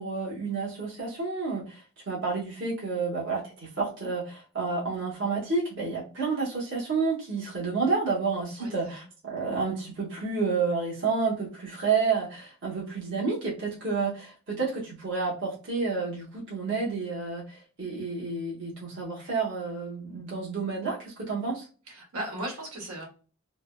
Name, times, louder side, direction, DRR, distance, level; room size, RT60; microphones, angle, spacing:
voice 1, 0.0-21.6, right 4 dB, 55° right, -5 dB, 0.9 m, -30 dB
voice 2, 8.6-9.0 21.9-23.1, right 1 dB, 90° right, -1 dB, 1.3 m, -37 dB
3.2 x 2.1 x 2.2 m, 0.36 s
head